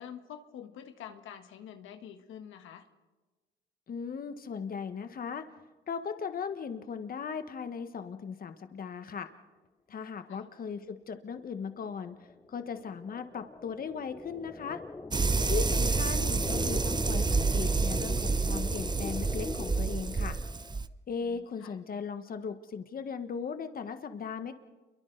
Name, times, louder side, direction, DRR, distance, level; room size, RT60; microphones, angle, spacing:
voice 1, 0.0-2.9 9.9-10.0 10.3-10.4 21.2-21.7, left 9 dB, 85° left, 7 dB, 1.5 m, -47 dB
voice 2, 3.9-5.5 5.9-9.3 9.9-14.8 15.5-20.4 21.1-24.5, left 6 dB, 45° left, 9 dB, 1.4 m, -38 dB
scifi starship, 11.9-20.8, left 3 dB, 15° left, 0.7 m, -40 dB
sound 1, 15.1-20.9, right 4 dB, 20° right, 0.7 m, -29 dB
29.0 x 23.0 x 4.0 m, 1.2 s
cardioid pair, 90°, 20 cm